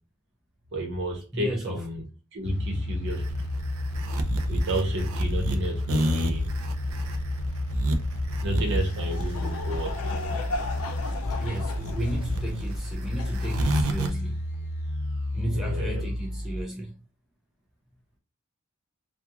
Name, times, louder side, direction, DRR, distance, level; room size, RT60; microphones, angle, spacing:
voice 1, 0.7-2.0 2.3-3.4 4.5-6.5 8.4-10.0 15.5-16.1, right 1 dB, 55° right, 0.9 m, -31 dB
voice 2, 1.3-1.8 11.3-14.4 15.3-16.9, right 1 dB, ahead, 0.4 m, -33 dB
sound 1, 2.4-16.6, left 1 dB, 50° left, 0.9 m, -31 dB
sound 2, 3.1-14.1, right 1 dB, 75° right, 0.4 m, -29 dB
Laughter / Crowd, 8.6-14.3, left 3 dB, 90° left, 0.4 m, -37 dB
2.4 x 2.3 x 2.8 m
head